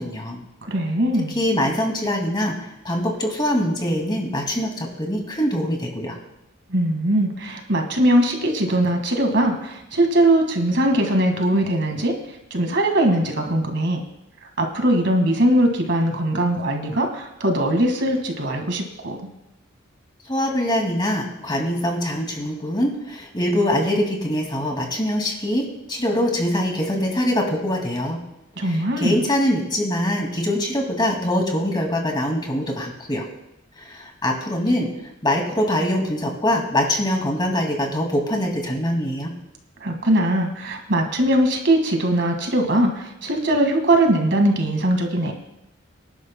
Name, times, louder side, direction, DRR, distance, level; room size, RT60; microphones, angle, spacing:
voice 1, 0.0-0.4 1.3-6.2 20.3-28.2 28.6-33.3 33.8-34.9 35.2-39.3, left 1 dB, 20° left, 1 dB, 2.2 m, -23 dB
voice 2, 0.6-1.4 6.7-12.2 12.5-14.0 14.6-19.3 28.6-29.2 39.8-45.3, right 1 dB, 60° right, 4 dB, 1.8 m, -20 dB
24.5 x 11.5 x 2.2 m, 0.86 s
head